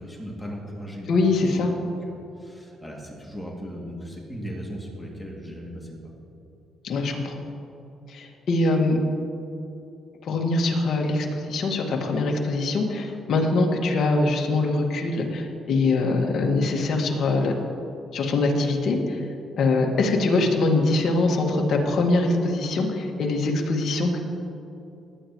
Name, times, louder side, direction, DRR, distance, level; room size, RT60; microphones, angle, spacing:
voice 1, 0.0-1.1 1.6-6.0, equal, 5° left, -3 dB, 2.6 m, -37 dB
voice 2, 1.1-1.7 6.8-7.4 8.1-9.0 10.2-17.5 18.1-19.2 19.6-24.2, left 2 dB, 65° left, 1 dB, 1.8 m, -23 dB
19.5 x 9.5 x 3.1 m, 2.9 s
cardioid pair, 90°, 0 cm